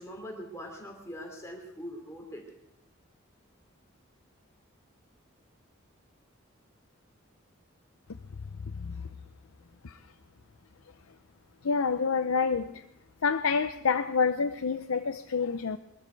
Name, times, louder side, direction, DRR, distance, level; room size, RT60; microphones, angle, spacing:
voice 1, 0.0-2.5, equal, 15° left, 3.0 m, -42 dB
voice 2, 11.6-12.8 13.2-15.8, left 5 dB, 80° left, 0.6 m, -28 dB
22.5 x 13.5 x 4.6 m
head